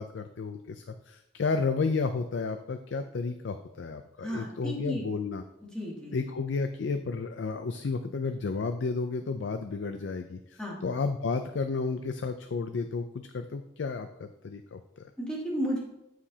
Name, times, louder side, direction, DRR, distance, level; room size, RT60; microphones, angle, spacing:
voice 1, 0.0-5.4 6.1-15.1, left 4 dB, 75° left, 8 dB, 0.4 m, -32 dB
voice 2, 4.2-5.0 5.7-6.3 10.6-10.8 15.2-15.8, equal, 5° left, -5 dB, 2.4 m, -33 dB
14.0 x 5.0 x 2.8 m, 0.83 s
head